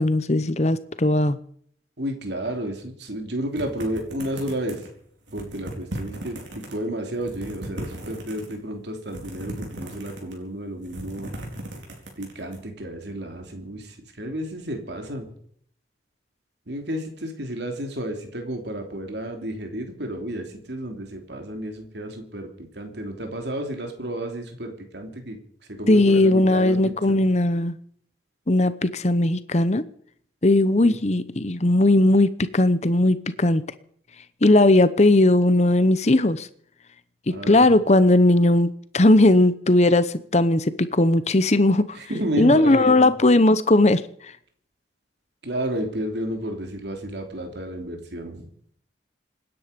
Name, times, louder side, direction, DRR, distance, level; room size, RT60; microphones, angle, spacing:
voice 1, 0.0-1.4 25.9-27.8 28.5-29.8 30.4-33.6 34.4-36.5 37.3-40.1 40.3-41.9 42.4-44.0, left 2 dB, 35° left, 14 dB, 0.9 m, -18 dB
voice 2, 2.0-4.8 5.3-11.3 12.2-15.3 16.7-25.4 25.7-27.0 30.8-31.0 37.3-37.7 41.9-43.1 45.4-48.5, right 1 dB, 70° right, 4 dB, 3.1 m, -31 dB
sound 1, 3.6-4.9 5.3-6.7 7.1-8.6 9.1-10.4 10.8-12.6, right 1 dB, 90° right, 4.5 m, -36 dB
26.5 x 10.0 x 5.2 m, 0.63 s
head